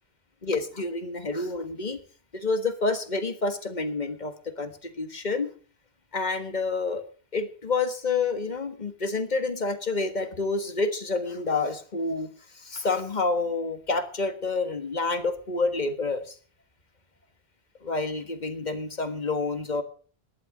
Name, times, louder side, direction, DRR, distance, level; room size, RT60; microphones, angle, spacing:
voice 1, 0.4-2.0 2.3-5.5 6.1-7.0 7.3-12.3 12.6-16.3 17.8-19.8, left 3 dB, 45° left, 9 dB, 1.6 m, -28 dB
17.0 x 11.5 x 5.0 m, 0.42 s
omnidirectional pair, 1.1 m